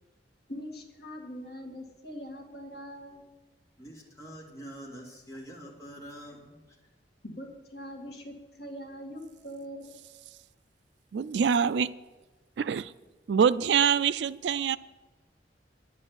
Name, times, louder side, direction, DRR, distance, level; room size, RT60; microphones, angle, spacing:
voice 1, 0.5-3.2 7.2-9.8, equal, 65° left, 1 dB, 2.0 m, -42 dB
voice 2, 3.8-6.6, equal, 20° left, -4 dB, 3.0 m, -45 dB
voice 3, 11.1-11.9 12.6-12.9 13.3-14.8, right 7 dB, 75° right, 17 dB, 0.4 m, -25 dB
10.5 x 7.5 x 8.0 m, 1.2 s
head